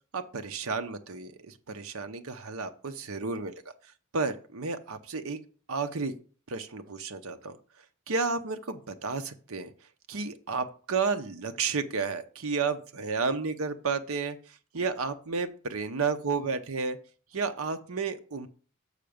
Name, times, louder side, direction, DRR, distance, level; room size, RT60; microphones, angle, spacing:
voice 1, 0.1-3.5 4.1-5.4 5.7-6.1 6.5-7.6 8.1-9.7 10.1-17.0 17.3-18.5, right 4 dB, 75° right, 8 dB, 0.8 m, -32 dB
6.6 x 5.7 x 5.1 m, 0.40 s
head